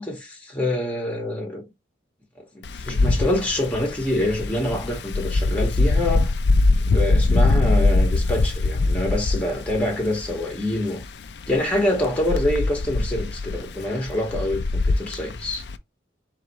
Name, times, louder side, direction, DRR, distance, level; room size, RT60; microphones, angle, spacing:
voice 1, 0.0-1.6 2.5-6.3 6.8-11.0 11.5-15.6, left 1 dB, 5° left, 1.5 m, -26 dB
Wind, 2.6-15.8, left 2 dB, 65° left, 0.4 m, -23 dB
4.0 x 3.7 x 3.0 m
head